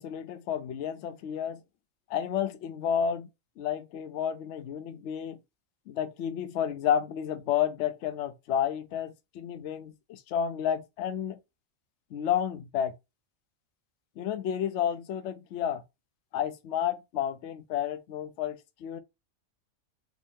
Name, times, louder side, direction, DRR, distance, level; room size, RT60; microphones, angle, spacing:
voice 1, 0.0-1.6 2.1-3.3 3.6-5.4 5.9-11.4 12.1-12.9 14.2-15.8 16.3-19.0, left 9 dB, 65° left, 0.8 m, -31 dB
3.7 x 2.5 x 3.4 m
omnidirectional pair, 1.4 m